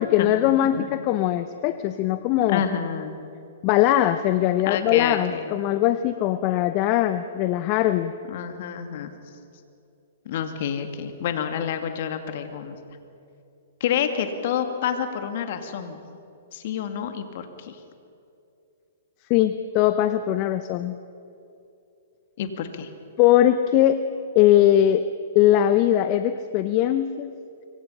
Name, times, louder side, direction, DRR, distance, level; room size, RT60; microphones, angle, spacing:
voice 1, 0.0-2.6 3.6-8.1 19.3-21.0 23.2-24.0 24.3-25.0 25.3-27.3, left 12 dB, 40° left, 11 dB, 0.8 m, -20 dB
voice 2, 2.5-3.2 4.7-5.5 8.3-9.1 10.3-12.8 13.8-16.0 16.5-17.8 22.4-22.9, left 8 dB, 55° left, 7 dB, 2.3 m, -28 dB
25.5 x 23.5 x 5.7 m, 2.6 s
hypercardioid pair, 120°, 0 cm